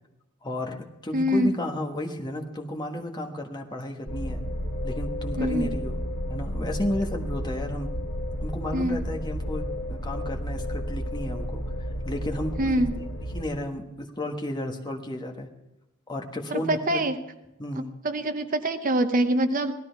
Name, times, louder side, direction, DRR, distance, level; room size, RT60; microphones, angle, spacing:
voice 1, 0.4-4.4 4.8-6.0 6.3-7.9 8.4-11.6 12.0-12.8 13.3-13.9 14.2-15.5 16.1-17.0 17.6-17.9, left 1 dB, 20° left, 1 dB, 1.4 m, -33 dB
voice 2, 1.1-1.5 5.4-5.7 8.7-9.0 12.6-12.9 16.7-17.1 18.0-19.7, right 1 dB, 40° right, 9 dB, 0.7 m, -24 dB
sound 1, 4.1-13.4, equal, 70° left, 1.4 m, -32 dB
17.0 x 13.0 x 4.6 m, 0.95 s
head